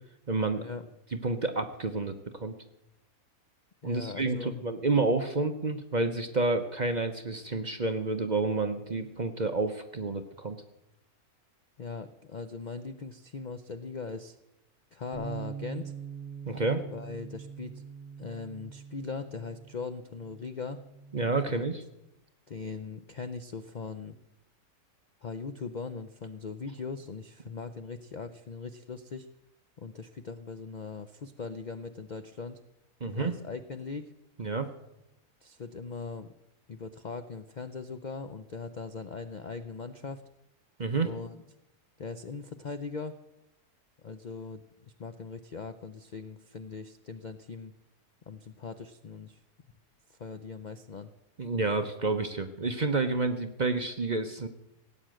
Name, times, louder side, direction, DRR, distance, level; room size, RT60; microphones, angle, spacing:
voice 1, 0.3-0.6 1.2-2.5 3.8-10.6 16.5-16.9 21.1-21.8 33.0-33.4 34.4-34.7 40.8-41.1 51.4-54.5, right 3 dB, 40° right, 7 dB, 0.7 m, -29 dB
voice 2, 3.8-4.7 11.8-14.4 14.9-15.9 16.9-17.8 18.2-20.8 21.5-21.8 22.5-24.2 25.2-29.3 29.8-32.6 33.1-34.1 35.4-36.3 36.7-40.2 41.0-41.4 42.0-43.1 44.0-44.6 45.0-47.7 48.3-49.4 50.1-51.1, left 4 dB, 55° left, 9 dB, 0.4 m, -40 dB
Bass guitar, 15.1-21.4, right 6 dB, 10° right, 5.4 m, -43 dB
17.5 x 8.8 x 7.6 m, 0.89 s
omnidirectional pair, 1.7 m